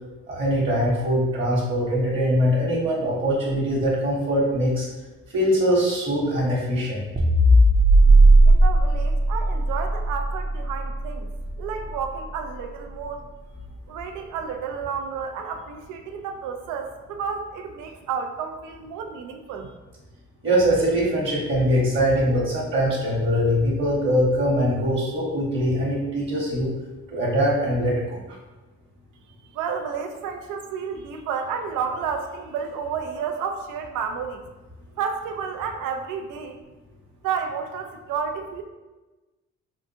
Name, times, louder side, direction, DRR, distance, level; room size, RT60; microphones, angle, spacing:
voice 1, 0.3-4.9 5.3-7.1 20.4-26.7 27.1-28.2, equal, 40° right, -6 dB, 1.1 m, -22 dB
sound 1, 7.2-11.6, right 1 dB, 20° right, 0.5 m, -17 dB
voice 2, 8.5-11.3 11.6-13.3 13.9-19.7 29.5-34.5 35.0-36.6 37.2-38.6, right 6 dB, 85° right, 5 dB, 0.5 m, -31 dB
3.7 x 2.4 x 2.8 m, 1.2 s
cardioid pair, 90°, 30 cm